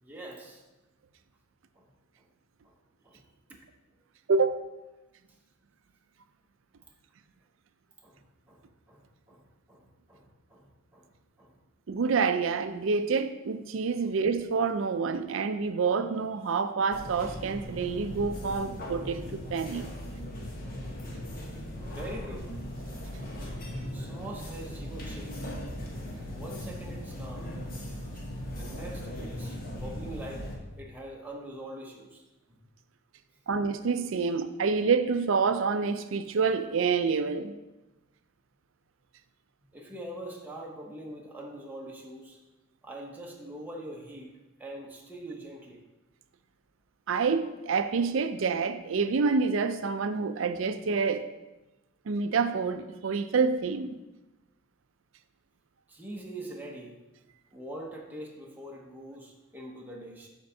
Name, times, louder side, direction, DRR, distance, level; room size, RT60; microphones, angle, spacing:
voice 1, 0.0-0.6 1.7-1.9 2.2-2.3 2.6-2.8 3.0-3.2 8.0-11.1 11.4-11.6 14.0-14.1 21.9-22.5 23.9-25.3 26.3-27.5 28.5-30.5 30.8-32.2 32.5-32.6 39.7-42.4 42.8-45.8 55.9-57.0 57.5-60.3, right 1 dB, 10° right, 0.7 m, -43 dB
voice 2, 11.9-19.9 33.5-37.5 47.1-51.3 52.1-54.0, right 5 dB, 70° right, 0.4 m, -27 dB
sound 1, 16.9-30.6, equal, 45° left, 1.1 m, -38 dB
12.0 x 4.4 x 2.7 m
head